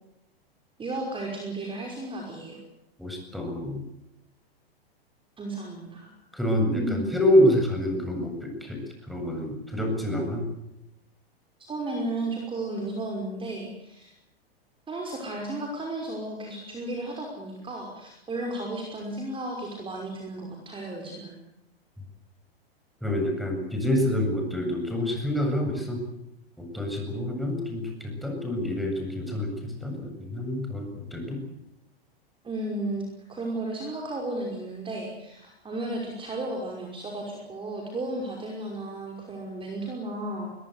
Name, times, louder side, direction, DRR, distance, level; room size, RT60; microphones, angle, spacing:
voice 1, 0.8-2.6 5.4-6.1 6.8-7.1 11.7-14.1 14.9-21.3 32.4-40.5, right 2 dB, 15° right, 1 dB, 5.6 m, -34 dB
voice 2, 3.0-3.8 6.3-8.8 9.1-10.4 23.0-26.0 26.6-31.4, left 1 dB, ahead, 3 dB, 8.0 m, -27 dB
22.5 x 21.5 x 8.2 m, 0.85 s
hypercardioid pair, 110°, 31 cm